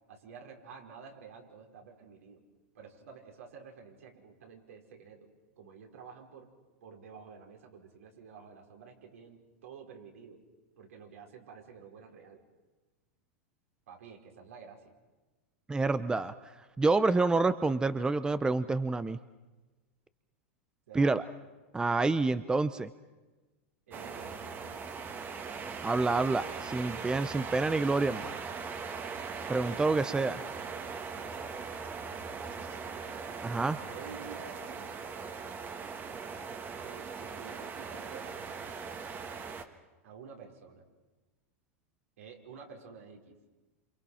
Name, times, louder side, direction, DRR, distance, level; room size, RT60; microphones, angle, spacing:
voice 1, 0.1-2.4 2.7-5.3 5.6-6.5 6.8-10.4 10.8-12.4 13.9-14.9 20.9-21.3 23.9-24.8 33.8-35.4 36.8-38.7 40.0-40.8 42.2-43.4, right 6 dB, 80° right, 1 dB, 5.4 m, -50 dB
voice 2, 15.7-16.3 16.8-19.2 20.9-21.2 21.7-22.9 25.8-28.4 29.5-30.4 33.4-33.8, right 3 dB, 10° right, 13 dB, 0.8 m, -28 dB
sound 1, 23.9-39.6, right 5 dB, 25° right, 1.8 m, -40 dB
27.5 x 27.5 x 5.8 m, 1.2 s
hypercardioid pair, 120°, 7 cm